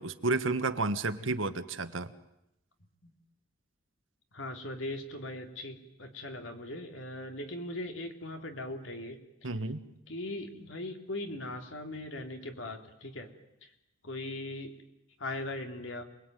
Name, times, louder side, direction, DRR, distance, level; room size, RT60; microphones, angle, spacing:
voice 1, 0.0-2.1 9.4-9.8, right 3 dB, 85° right, 10 dB, 1.6 m, -31 dB
voice 2, 4.3-9.2 9.4-9.5 10.1-13.3 13.6-13.7 14.0-14.7 15.2-16.0, left 1 dB, 80° left, 5 dB, 3.3 m, -39 dB
27.5 x 21.5 x 9.3 m, 0.85 s
head